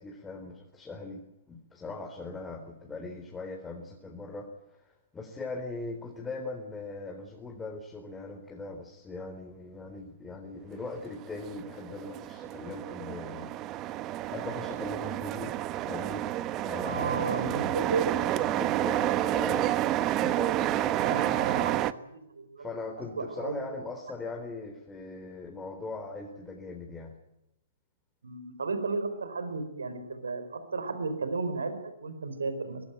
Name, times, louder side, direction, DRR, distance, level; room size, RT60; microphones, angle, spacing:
voice 1, 0.0-13.5 13.8-15.6 15.9-21.6 22.6-27.2, left 3 dB, 15° left, 2 dB, 4.0 m, -40 dB
sound 1, 11.0-21.9, right 14 dB, 30° right, 1.1 m, -30 dB
voice 2, 16.8-18.2 21.0-22.7 23.2-23.6 28.2-32.8, right 4 dB, 80° right, 9 dB, 4.7 m, -33 dB
23.5 x 21.0 x 9.2 m, 0.85 s
hypercardioid pair, 120°, 0 cm